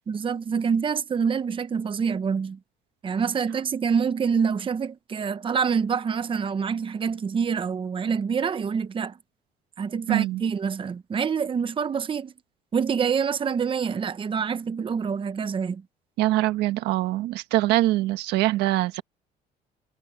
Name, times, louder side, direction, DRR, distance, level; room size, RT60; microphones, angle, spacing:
voice 1, 0.1-2.6 3.0-9.2 9.8-12.3 12.7-15.8, right 6 dB, 30° right, 0.9 m, -26 dB
voice 2, 10.1-10.4 16.2-19.0, right 16 dB, 90° right, 1.4 m, -23 dB
cardioid pair, 110°, 17 cm